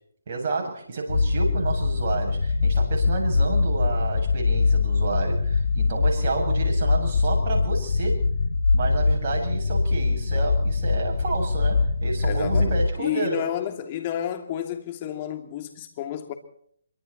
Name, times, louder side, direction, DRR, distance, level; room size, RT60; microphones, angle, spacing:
voice 1, 0.3-8.2 8.7-13.4, right 3 dB, 45° right, 7.9 m, -30 dB
sound 1, 1.1-12.9, left 4 dB, 80° left, 1.5 m, -23 dB
voice 2, 12.2-16.3, left 10 dB, 30° left, 2.9 m, -31 dB
25.5 x 24.5 x 4.4 m
figure-of-eight pair, 150°, 0 cm